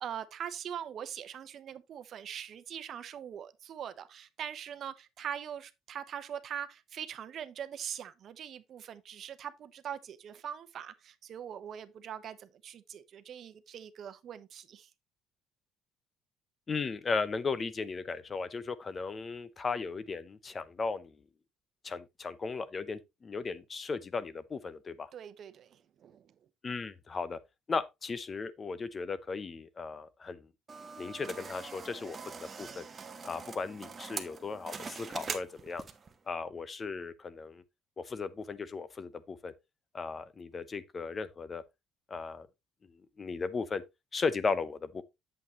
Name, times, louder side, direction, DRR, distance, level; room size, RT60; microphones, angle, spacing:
voice 1, 0.0-14.9 25.1-26.3, right 9 dB, 55° right, 0.9 m, -42 dB
voice 2, 16.7-21.1 21.8-25.1 26.6-27.4 27.7-30.5 31.0-32.9 33.2-35.8 36.3-37.6 38.0-39.5 39.9-41.6 42.1-42.5 43.2-43.8 44.1-45.0, left 4 dB, 30° left, 0.7 m, -36 dB
sound 1, 30.7-36.1, right 5 dB, 30° right, 1.1 m, -43 dB
8.4 x 7.5 x 3.0 m
cardioid pair, 105°, 0 cm